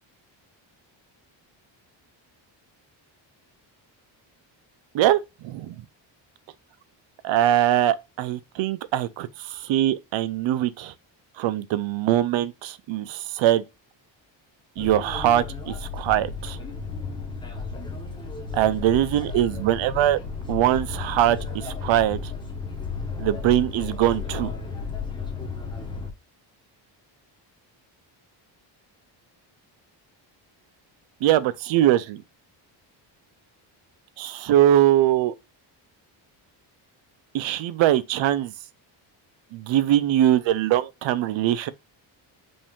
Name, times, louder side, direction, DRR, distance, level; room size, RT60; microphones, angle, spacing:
voice 1, 4.9-5.8 7.2-10.9 11.4-13.6 14.8-16.6 18.5-20.2 20.5-22.3 23.2-24.5 31.2-32.2 34.2-35.3 37.3-38.5 39.5-41.7, right 12 dB, 75° right, 0.7 m, -22 dB
sound 1, 14.8-26.1, left 4 dB, 10° left, 1.0 m, -33 dB
5.2 x 2.7 x 3.5 m
cardioid pair, 170°, 46 cm